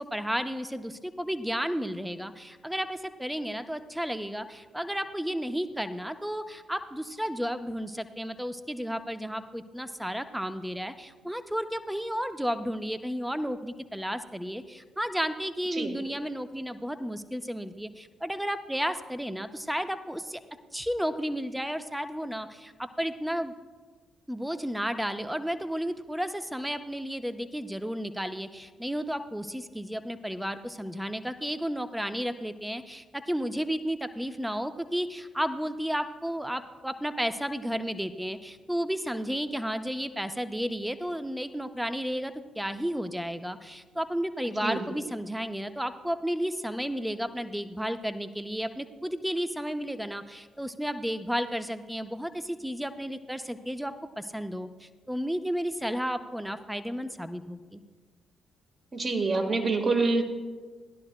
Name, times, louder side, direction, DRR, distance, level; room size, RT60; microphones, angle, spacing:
voice 1, 0.0-20.4 20.7-23.5 24.3-57.8, equal, 5° right, 9 dB, 0.7 m, -33 dB
voice 2, 44.6-44.9 58.9-60.2, right 3 dB, 40° right, 3 dB, 1.5 m, -26 dB
16.5 x 11.5 x 2.2 m, 1.4 s
hypercardioid pair, 40°, 0 cm